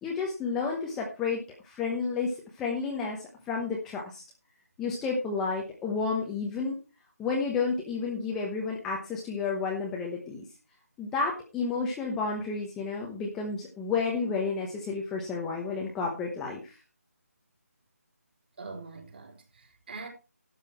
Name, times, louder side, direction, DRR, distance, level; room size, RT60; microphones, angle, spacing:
voice 1, 0.0-3.2 3.5-4.2 4.8-6.8 7.2-10.4 11.0-16.7, left 4 dB, 5° left, 1.0 m, -31 dB
voice 2, 18.6-20.1, right 4 dB, 40° right, 4.0 m, -43 dB
12.0 x 8.1 x 4.4 m
figure-of-eight pair, 170°, 9 cm